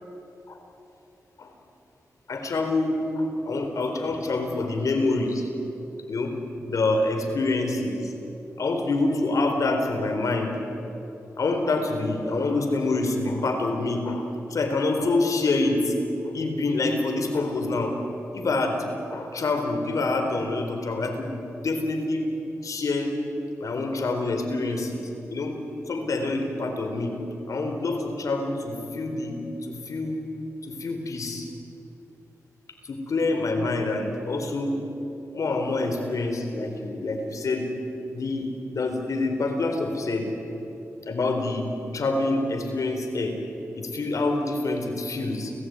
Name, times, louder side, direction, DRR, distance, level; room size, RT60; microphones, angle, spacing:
voice 1, 2.3-5.5 6.1-6.4 6.7-8.1 8.6-10.5 11.4-15.9 16.2-18.0 18.3-18.8 19.1-21.3 21.6-22.3 22.6-23.2 23.6-25.0 25.3-25.6 25.9-27.1 27.5-30.2 30.6-31.5 32.9-34.8 35.3-37.7 38.1-40.3 41.1-41.6 41.9-43.4 43.8-45.5, left 2 dB, 70° left, 5 dB, 4.0 m, -26 dB
30.0 x 15.5 x 9.6 m, 3.0 s
cardioid pair, 65°, 6 cm